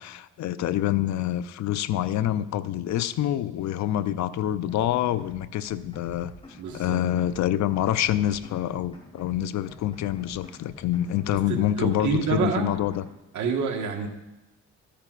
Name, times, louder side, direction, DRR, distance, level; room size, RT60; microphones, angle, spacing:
voice 1, 0.0-13.0, left 12 dB, 65° left, 15 dB, 0.5 m, -26 dB
sound 1, 4.5-5.4 5.7-7.4 7.7-9.4 9.7-11.4 11.7-13.2, left 1 dB, 20° left, 3.0 m, -48 dB
voice 2, 6.6-7.0 11.8-12.7 13.3-14.1, right 5 dB, 75° right, 3 dB, 1.5 m, -27 dB
14.0 x 10.0 x 2.4 m, 1.0 s
cardioid pair, 90°, 30 cm